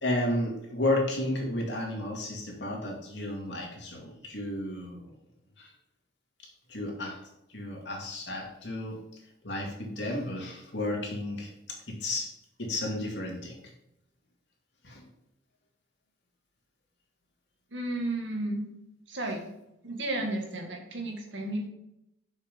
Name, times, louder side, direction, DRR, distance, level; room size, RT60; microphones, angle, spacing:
voice 1, 0.0-5.1 5.6-5.7 6.7-7.2 7.5-9.0 9.4-12.3 12.6-13.6 14.8-15.0, left 1 dB, 70° left, -1 dB, 2.4 m, -32 dB
voice 2, 17.7-18.7 19.1-19.5 19.8-21.7, right 1 dB, 80° right, 2 dB, 1.9 m, -33 dB
6.7 x 5.8 x 5.4 m, 0.84 s
head